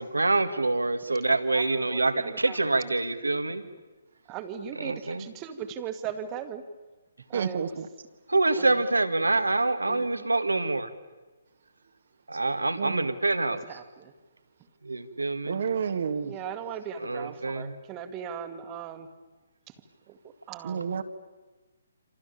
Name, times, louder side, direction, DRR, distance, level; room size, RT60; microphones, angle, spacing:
voice 1, 0.0-3.6 4.8-5.3 8.3-10.9 12.3-13.7 14.8-15.6 17.0-17.8, right 2 dB, 80° right, 10 dB, 2.1 m, -26 dB
voice 2, 1.5-2.9 4.3-6.6 7.3-7.8 8.6-8.7 9.9-10.3 10.6-10.7 12.5-12.7 13.7-14.1 15.5-15.7 16.2-19.1 20.1-20.2 20.5-20.8, right 8 dB, 20° right, 7 dB, 2.1 m, -39 dB
voice 3, 7.3-7.9 12.8-13.1 15.5-16.3 20.6-21.0, right 6 dB, 50° right, 8 dB, 1.8 m, -30 dB
28.0 x 27.5 x 7.1 m, 1.2 s
figure-of-eight pair, 135°, 0 cm